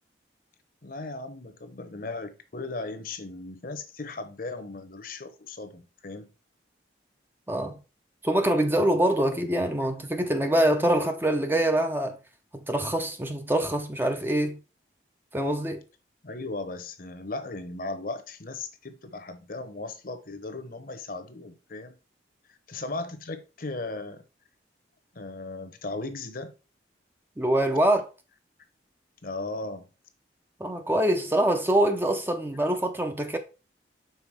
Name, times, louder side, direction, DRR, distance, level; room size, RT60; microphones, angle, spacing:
voice 1, 0.8-6.3 16.2-22.0 22.7-24.2 25.1-26.5 29.2-29.9, left 2 dB, 50° left, 0.9 m, -37 dB
voice 2, 7.5-7.8 8.2-12.2 12.5-14.6 15.3-15.8 27.4-28.0 30.6-33.4, right 1 dB, 10° right, 0.6 m, -24 dB
5.8 x 4.1 x 4.6 m
head